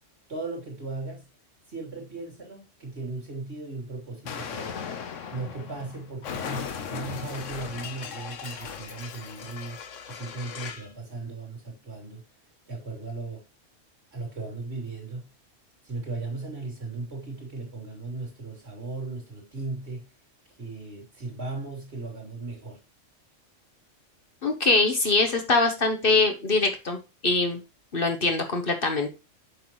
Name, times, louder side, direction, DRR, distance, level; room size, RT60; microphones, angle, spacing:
voice 1, 0.3-1.3 1.7-4.8 5.3-9.8 10.1-12.2 12.7-13.4 14.1-15.3 15.8-20.1 20.6-22.8, right 3 dB, 60° right, 3.3 m, -37 dB
Explosion, 4.3-10.9, left 7 dB, 75° left, 1.2 m, -37 dB
voice 2, 24.4-27.0 27.2-27.6 27.9-29.1, left 3 dB, 50° left, 1.2 m, -23 dB
8.0 x 5.9 x 3.1 m
omnidirectional pair, 1.3 m